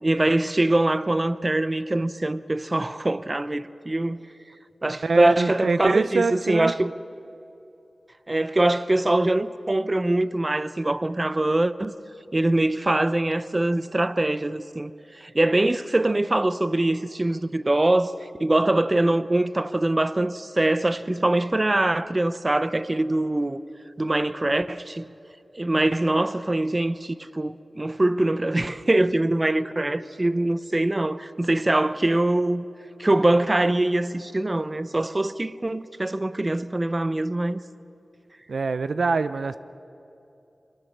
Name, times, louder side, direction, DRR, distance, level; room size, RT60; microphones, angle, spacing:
voice 1, 0.0-4.2 4.8-6.9 8.3-11.9 12.3-18.1 18.4-23.6 24.0-25.1 25.5-32.6 33.0-37.6, right 1 dB, 30° right, 0.7 m, -23 dB
voice 2, 5.0-6.7 38.5-39.6, right 4 dB, 80° right, 0.5 m, -24 dB
24.0 x 17.5 x 7.2 m
wide cardioid pair, 60°, 0 cm